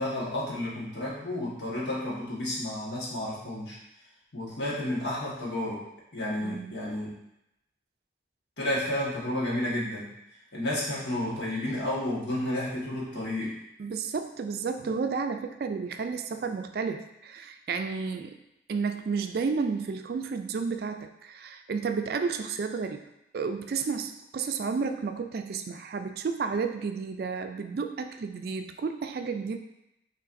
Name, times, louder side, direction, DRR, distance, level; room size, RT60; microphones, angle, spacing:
voice 1, 0.0-3.8 4.3-5.8 6.1-7.1 8.6-10.1 10.5-13.6, left 1 dB, 75° left, -6 dB, 1.5 m, -31 dB
voice 2, 6.4-7.0 13.8-18.4 18.7-23.0 23.3-29.6, right 5 dB, 55° right, 7 dB, 0.3 m, -32 dB
5.6 x 3.1 x 2.6 m, 0.85 s
head